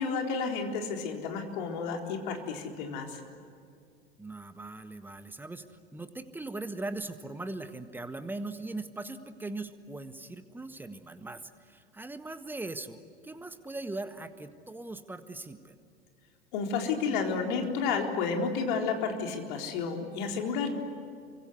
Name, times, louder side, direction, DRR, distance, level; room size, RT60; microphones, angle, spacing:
voice 1, 0.0-3.2 16.5-20.7, left 5 dB, 55° left, 3 dB, 4.1 m, -31 dB
voice 2, 4.2-15.7, right 2 dB, 5° right, 10 dB, 1.6 m, -40 dB
28.5 x 24.5 x 8.3 m, 2.4 s
figure-of-eight pair, 80°, 30 cm